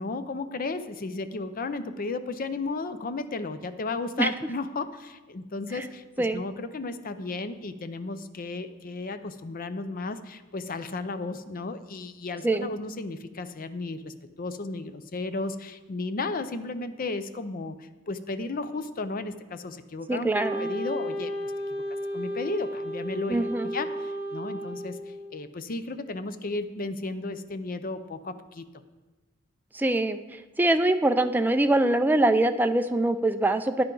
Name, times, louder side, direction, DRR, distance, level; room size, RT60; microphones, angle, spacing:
voice 1, 0.0-20.3 20.6-25.0 25.3-28.7, left 3 dB, 45° left, 11 dB, 0.6 m, -34 dB
voice 2, 20.1-20.7 23.3-23.7 29.7-30.2 30.6-33.8, right 1 dB, 10° right, 8 dB, 0.3 m, -23 dB
Wind instrument woodwind instrument, 20.3-25.4, equal, 30° left, 3.9 m, -33 dB
10.0 x 10.0 x 3.9 m, 1.2 s
head